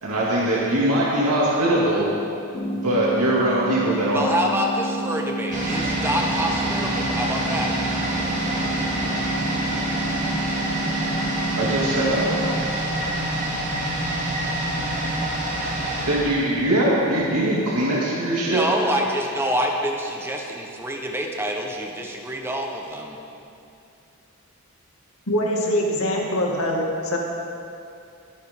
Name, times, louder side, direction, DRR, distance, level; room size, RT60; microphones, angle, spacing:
voice 1, 0.0-2.1 2.8-4.3 11.6-12.6 16.0-18.7, right 1 dB, 90° right, -7 dB, 2.5 m, -21 dB
sound 1, 2.5-12.5, right 1 dB, 25° left, 1.1 m, -30 dB
voice 2, 4.1-7.7 18.4-23.2, equal, 10° right, 1 dB, 1.1 m, -26 dB
sound 2, 5.5-17.2 17.5-17.6, right 1 dB, 35° right, 2.4 m, -26 dB
voice 3, 25.3-27.2, left 1 dB, 70° left, -1 dB, 2.1 m, -23 dB
22.5 x 9.7 x 3.8 m, 2.6 s
head